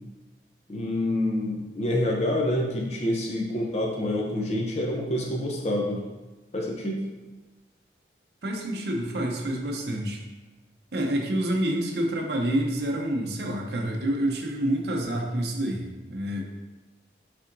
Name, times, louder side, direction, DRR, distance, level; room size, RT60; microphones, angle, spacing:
voice 1, 0.7-6.0 6.5-7.0, left 1 dB, 40° left, -1 dB, 0.5 m, -27 dB
voice 2, 8.4-10.2 10.9-16.4, right 1 dB, 65° right, 1 dB, 0.6 m, -28 dB
5.5 x 3.5 x 2.6 m, 1.2 s
head